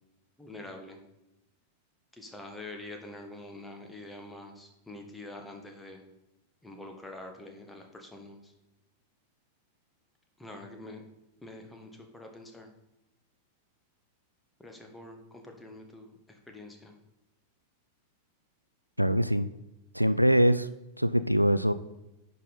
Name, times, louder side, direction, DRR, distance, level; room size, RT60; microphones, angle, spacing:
voice 1, 0.4-1.0 2.1-6.0 6.6-8.5 10.4-11.0 11.4-12.7 14.6-16.9, left 2 dB, 10° left, 3 dB, 1.5 m, -46 dB
voice 2, 19.0-19.5 19.9-20.7 21.0-21.7, equal, 90° right, 14 dB, 0.3 m, -23 dB
10.0 x 5.4 x 4.2 m, 0.91 s
figure-of-eight pair, 90°, 0 cm